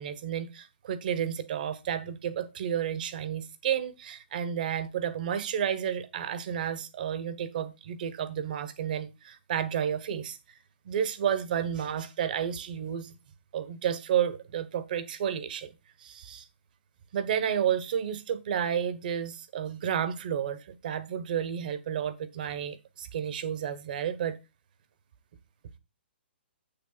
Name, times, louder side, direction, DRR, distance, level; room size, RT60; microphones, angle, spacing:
voice 1, 0.0-10.4 10.8-13.1 13.5-15.7 16.0-16.4 17.1-24.4, right 9 dB, 45° right, 1.2 m, -31 dB
8.1 x 6.9 x 4.0 m
hypercardioid pair, 160°, 6 cm